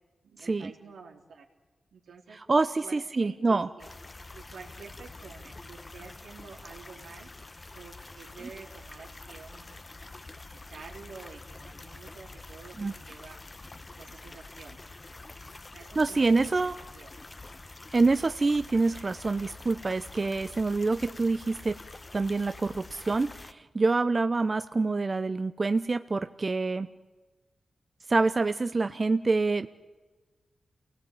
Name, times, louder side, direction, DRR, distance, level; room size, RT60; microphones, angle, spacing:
voice 1, 0.2-1.5 1.9-2.4 2.8-3.9 4.3-7.3 7.7-10.2 10.7-13.4 14.0-14.8 15.7-17.1, right 5 dB, 90° right, 1 dB, 3.0 m, -49 dB
voice 2, 2.5-3.7 12.8-12.9 16.0-16.8 17.9-21.8 22.1-26.9 28.1-29.7, right 3 dB, 40° right, 10 dB, 0.7 m, -26 dB
sound 1, 3.8-23.5, left 2 dB, 35° left, 1.0 m, -46 dB
28.0 x 18.0 x 8.8 m, 1.3 s
cardioid pair, 55°, 0 cm